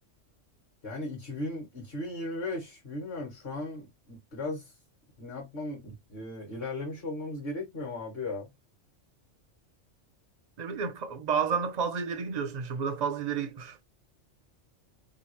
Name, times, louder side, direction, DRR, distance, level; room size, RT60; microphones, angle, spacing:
voice 1, 0.8-4.7 5.2-8.5, left 2 dB, 55° left, 1.4 m, -37 dB
voice 2, 10.6-13.8, right 6 dB, 55° right, 0.4 m, -31 dB
2.9 x 2.4 x 3.0 m
omnidirectional pair, 1.3 m